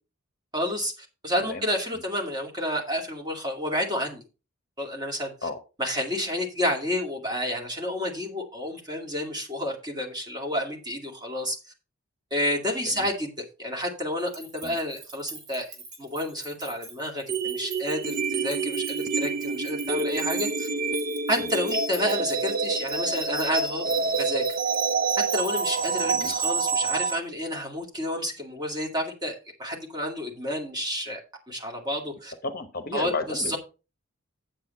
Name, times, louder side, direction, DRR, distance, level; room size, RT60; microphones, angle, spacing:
voice 1, 0.5-4.2 4.8-5.3 5.8-11.6 12.3-13.3 13.6-15.7 16.0-20.7 21.3-23.9 24.2-24.4 25.3-31.2 31.5-32.3 32.9-33.6, left 1 dB, 20° right, 0 dB, 2.3 m, -30 dB
sound 1, 14.2-27.2, right 4 dB, 90° right, 4.3 m, -44 dB
sound 2, 17.3-27.2, right 4 dB, 40° right, 0.4 m, -27 dB
voice 2, 32.4-33.6, left 2 dB, 40° left, 8 dB, 0.9 m, -33 dB
8.2 x 7.8 x 4.3 m, 0.31 s
head